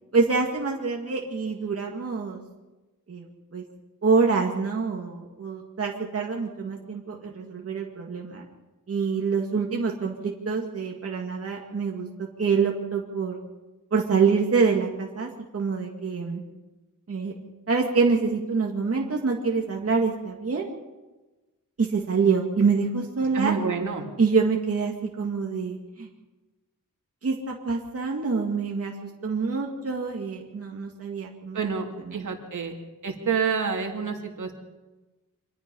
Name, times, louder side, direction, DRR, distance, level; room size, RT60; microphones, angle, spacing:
voice 1, 0.1-2.4 3.1-3.3 3.5-3.6 4.0-8.5 8.9-13.4 13.9-16.4 17.1-17.3 17.7-20.7 21.8-23.5 24.2-26.1 27.2-31.6 32.0-32.2, right 5 dB, 45° right, -1 dB, 2.4 m, -26 dB
voice 2, 23.3-24.1 31.5-32.7 33.0-34.5, right 6 dB, 70° right, 2 dB, 2.9 m, -28 dB
26.0 x 20.5 x 5.6 m, 1.2 s
wide cardioid pair, 135°, 32 cm